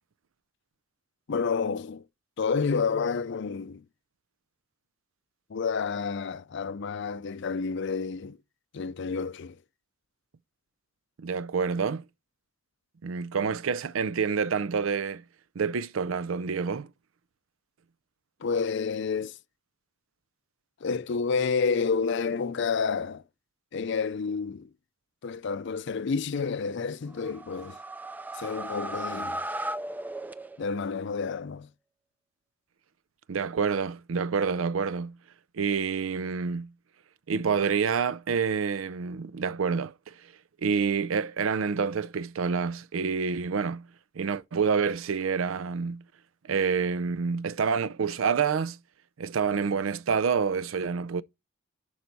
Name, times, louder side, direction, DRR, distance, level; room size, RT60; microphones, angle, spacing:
voice 1, 1.3-2.0 2.4-3.8 5.5-8.4 8.7-9.6 18.4-19.4 20.8-23.2 23.7-24.7 25.2-27.8 28.3-29.4 30.6-31.7, left 5 dB, 60° left, 0.5 m, -29 dB
voice 2, 11.2-12.0 13.0-15.2 15.6-16.9 33.3-35.2 35.5-36.7 37.3-40.1 40.6-43.9 44.2-46.0 46.5-48.8 49.2-51.2, right 5 dB, 90° right, 0.5 m, -28 dB
sound 1, 27.1-30.9, right 1 dB, 10° right, 0.4 m, -36 dB
11.5 x 4.7 x 4.1 m
head